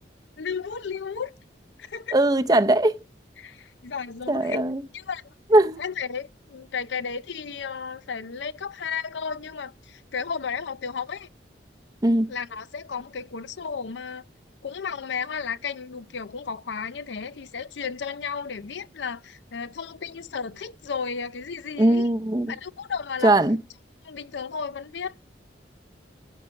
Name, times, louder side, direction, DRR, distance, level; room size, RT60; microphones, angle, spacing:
voice 1, 0.4-1.3 1.8-2.2 3.4-4.6 4.9-5.2 5.8-11.3 12.3-14.2 14.6-22.1 22.5-23.3 24.0-25.2, left 6 dB, 80° left, 0.6 m, -33 dB
voice 2, 2.1-3.0 4.3-4.8 5.5-5.8 12.0-12.3 21.8-22.5 23.2-23.6, right 1 dB, 20° right, 0.6 m, -20 dB
10.5 x 7.6 x 6.3 m
head